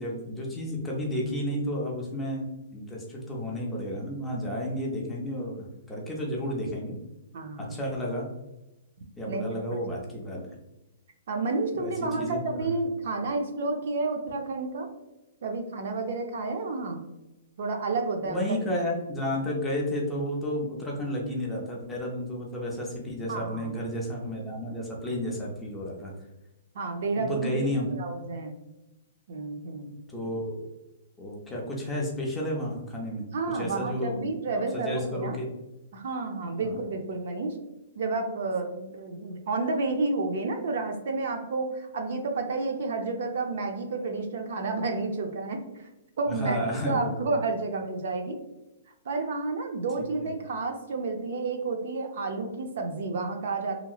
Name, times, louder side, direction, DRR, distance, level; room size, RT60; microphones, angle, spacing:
voice 1, 0.0-2.5 2.7-7.0 7.6-8.3 9.2-10.4 11.7-12.4 18.3-26.1 27.2-27.9 30.1-30.6 31.2-33.3 33.5-34.3 34.7-35.5 36.6-36.7 46.3-47.2 50.0-50.3, equal, 5° left, -3 dB, 0.4 m, -32 dB
voice 2, 7.3-7.7 9.2-9.5 11.3-14.9 15.4-17.0 17.6-18.4 23.3-23.8 26.7-27.7 28.0-28.5 29.3-30.0 33.3-35.3 35.9-37.6 38.0-45.6 46.2-48.4 49.1-53.8, right 3 dB, 50° right, 4 dB, 0.4 m, -30 dB
2.8 x 2.7 x 2.3 m, 0.98 s
hypercardioid pair, 170°, 0 cm